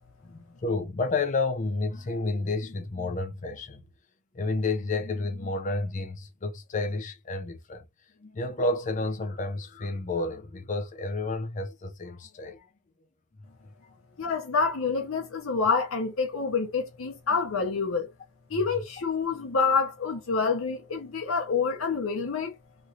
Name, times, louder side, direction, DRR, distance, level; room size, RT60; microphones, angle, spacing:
voice 1, 0.2-3.8 4.3-7.8 8.2-12.7 14.2-14.3, left 3 dB, 35° left, 0.5 m, -30 dB
voice 2, 14.2-18.1 18.5-22.5, left 5 dB, 75° left, 0.7 m, -27 dB
3.0 x 2.7 x 2.4 m
head